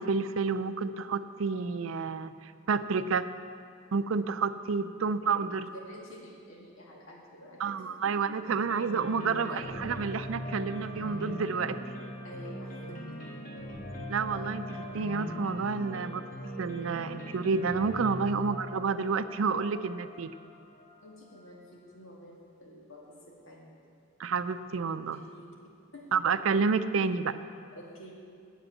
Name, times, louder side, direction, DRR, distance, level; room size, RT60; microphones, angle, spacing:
voice 1, 0.0-3.3 3.9-5.7 7.6-11.8 14.1-16.2 16.6-20.3 24.2-25.2 26.1-27.4, right 5 dB, 75° right, 12 dB, 0.4 m, -30 dB
voice 2, 5.7-8.2 9.4-9.6 12.2-13.2 21.0-23.8 25.1-25.5 25.9-26.2 27.7-28.1, equal, 80° left, -2 dB, 2.1 m, -49 dB
sound 1, 8.5-21.4, equal, 45° left, 1.6 m, -40 dB
8.0 x 7.9 x 8.8 m, 2.3 s
head